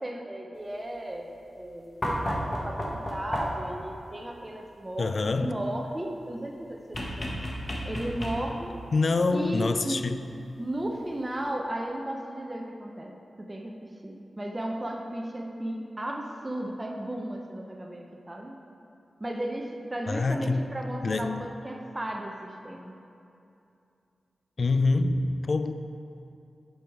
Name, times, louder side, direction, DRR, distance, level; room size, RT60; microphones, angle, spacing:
voice 1, 0.0-7.3 7.8-8.7 9.3-10.1 10.6-18.6 19.2-23.0, right 1 dB, 20° right, 1 dB, 0.5 m, -35 dB
sound 1, 2.0-3.8 6.9-8.7 10.2-10.3, equal, 30° left, 1.0 m, -32 dB
voice 2, 5.0-5.6 8.9-10.2 20.1-20.7 21.0-21.5 24.6-25.7, left 3 dB, 50° left, 10 dB, 0.3 m, -26 dB
8.0 x 5.4 x 4.5 m, 2.6 s
wide cardioid pair, 125°, 0 cm